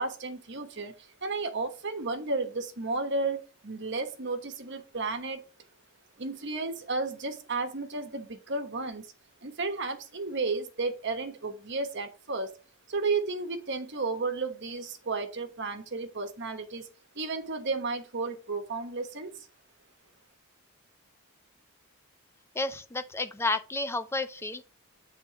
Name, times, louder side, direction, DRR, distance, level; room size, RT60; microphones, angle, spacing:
voice 1, 0.0-5.4 6.2-9.1 9.4-12.5 12.9-16.9 17.1-19.5, right 3 dB, 55° right, 1.1 m, -33 dB
voice 2, 22.6-24.6, left 2 dB, 10° left, 0.5 m, -31 dB
7.5 x 3.8 x 4.8 m
head